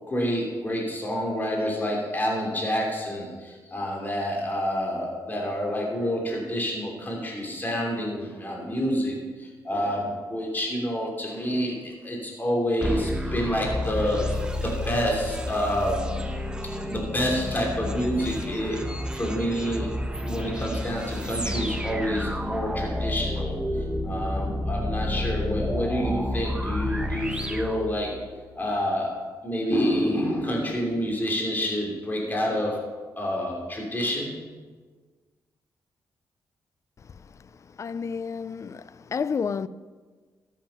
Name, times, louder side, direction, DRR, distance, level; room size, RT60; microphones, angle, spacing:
voice 1, 0.1-16.1 16.8-19.9 20.2-28.1 28.5-32.8 33.2-34.4, equal, 25° left, 3.0 m, -28 dB
sound 1, 12.8-28.4, left 1 dB, 10° right, 1.3 m, -30 dB
voice 2, 37.8-39.7, left 6 dB, 40° left, 0.4 m, -30 dB
14.0 x 7.4 x 5.8 m
cardioid pair, 85°, 7 cm